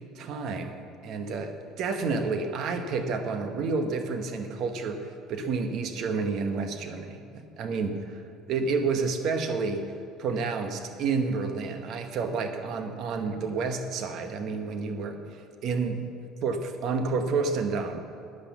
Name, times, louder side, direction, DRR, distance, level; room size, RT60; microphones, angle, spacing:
voice 1, 0.1-0.8 1.0-9.9 10.2-16.0 16.4-18.0, right 4 dB, 45° right, 7 dB, 1.0 m, -30 dB
10.5 x 9.6 x 7.2 m, 2.6 s
cardioid pair, 180°, 0 cm